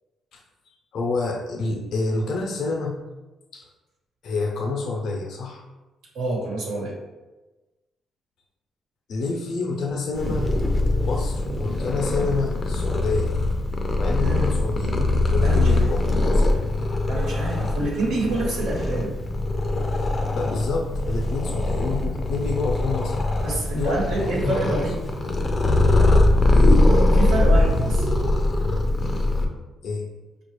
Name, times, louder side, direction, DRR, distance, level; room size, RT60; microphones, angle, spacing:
voice 1, 0.7-3.0 3.5-3.7 4.2-5.6 9.1-10.5 11.1-13.3 14.0-16.6 20.3-23.3 23.7-24.8 26.5-26.9 29.8-30.1, left 3 dB, 70° left, 1 dB, 0.7 m, -28 dB
voice 2, 6.1-7.0 14.2-14.5 15.4-15.9 17.1-19.1 23.4-25.0 27.1-28.1, right 2 dB, 85° right, -3 dB, 1.2 m, -27 dB
Purr, 10.1-29.5, left 2 dB, 30° left, 0.5 m, -22 dB
4.4 x 2.4 x 3.2 m, 1.1 s
cardioid pair, 90°, 0 cm